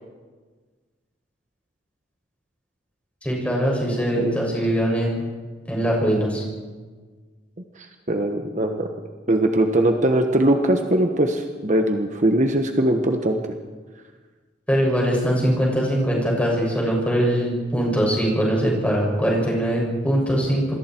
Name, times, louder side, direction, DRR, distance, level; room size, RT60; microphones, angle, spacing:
voice 1, 3.2-5.2 5.7-6.4 14.7-20.7, equal, 5° left, -2 dB, 6.6 m, -22 dB
voice 2, 8.1-8.9 9.3-13.4, right 1 dB, 40° right, 5 dB, 1.3 m, -20 dB
28.0 x 21.5 x 4.6 m, 1.4 s
head